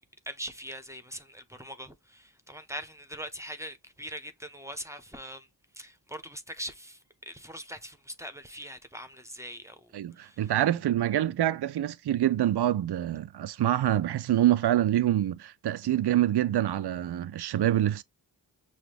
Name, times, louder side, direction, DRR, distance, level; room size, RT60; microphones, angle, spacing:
voice 1, 0.3-5.5 5.8-7.0 7.3-9.9 10.2-10.5, equal, 5° right, 0.9 m, -42 dB
voice 2, 9.9-18.0, right 12 dB, 70° right, 0.6 m, -26 dB
6.1 x 2.3 x 3.4 m
cardioid pair, 45°, 42 cm